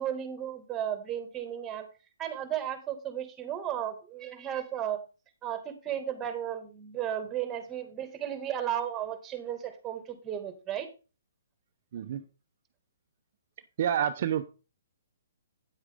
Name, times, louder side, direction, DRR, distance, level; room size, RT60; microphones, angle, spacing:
voice 1, 0.0-1.9 2.2-5.0 5.4-10.9, right 10 dB, 15° right, 9 dB, 2.1 m, -34 dB
voice 2, 13.8-14.4, right 9 dB, 55° right, 7 dB, 0.8 m, -28 dB
9.8 x 8.0 x 3.7 m, 0.32 s
hypercardioid pair, 145°, 0 cm